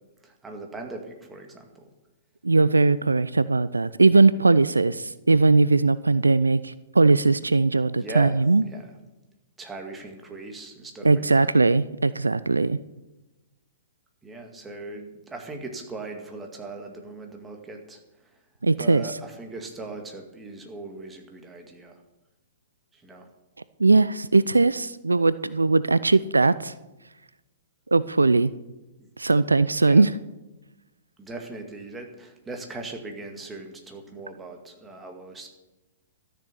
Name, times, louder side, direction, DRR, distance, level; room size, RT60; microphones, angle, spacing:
voice 1, 0.2-1.9 7.9-8.9 9.6-11.5 14.2-18.4 18.8-22.0 22.9-23.3 29.0-29.1 29.8-30.1 31.2-35.5, right 3 dB, 10° right, 3 dB, 2.0 m, -39 dB
voice 2, 2.4-8.6 11.0-12.8 18.6-19.0 23.8-26.7 27.9-28.5 29.2-30.1, right 3 dB, 80° right, 17 dB, 0.4 m, -19 dB
13.0 x 6.8 x 7.5 m, 1.0 s
figure-of-eight pair, 110°, 0 cm